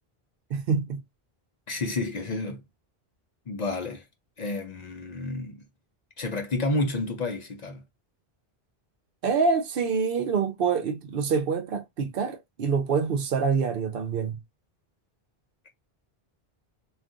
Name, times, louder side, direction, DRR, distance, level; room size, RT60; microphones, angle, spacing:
voice 1, 0.5-1.0 9.2-14.4, right 5 dB, 65° right, 0.7 m, -26 dB
voice 2, 1.7-2.6 3.5-4.0 4.4-5.6 6.2-7.8, left 2 dB, 50° left, 0.6 m, -30 dB
2.4 x 2.3 x 3.7 m
omnidirectional pair, 1.0 m